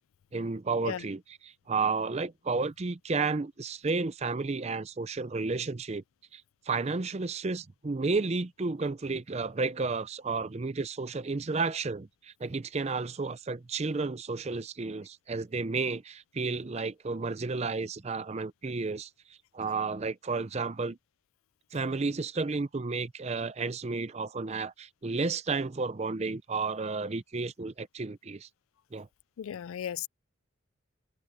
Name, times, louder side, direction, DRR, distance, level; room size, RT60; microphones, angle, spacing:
voice 1, 0.3-6.0 6.3-21.0 21.7-28.5 28.9-29.1, right 4 dB, 30° right, 0.5 m, -32 dB
voice 2, 29.4-30.1, left 9 dB, 80° left, 0.3 m, -35 dB
open air
head